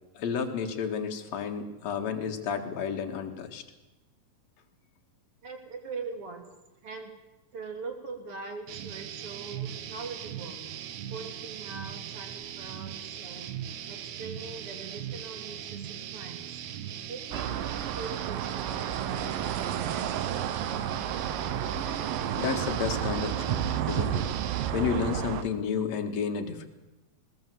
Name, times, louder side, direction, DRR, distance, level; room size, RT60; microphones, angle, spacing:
voice 1, 0.1-3.6 22.4-24.3 24.7-26.7, left 6 dB, 55° left, 4 dB, 2.8 m, -31 dB
voice 2, 5.4-6.5 6.8-7.1 7.5-10.6 11.1-13.5 13.9-16.6 17.1-20.4, right 4 dB, 40° right, 4 dB, 3.7 m, -42 dB
sound 1, 8.7-24.7, right 10 dB, 65° right, 2.1 m, -39 dB
sound 2, 17.3-25.4, right 10 dB, 85° right, 2.8 m, -31 dB
20.0 x 20.0 x 7.8 m, 1.0 s
omnidirectional pair, 4.0 m